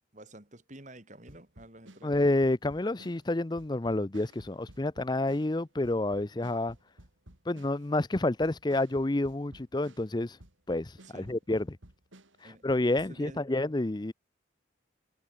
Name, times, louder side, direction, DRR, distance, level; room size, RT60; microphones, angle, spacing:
voice 1, 0.1-2.2 11.1-11.3 12.4-13.4, right 1 dB, 40° right, 3.6 m, -50 dB
sound 1, 1.3-10.2 10.4-13.1, right 1 dB, 80° right, 3.4 m, -55 dB
voice 2, 2.0-6.8 7.5-10.4 10.7-11.8 12.4-14.1, left 2 dB, 20° left, 0.6 m, -29 dB
head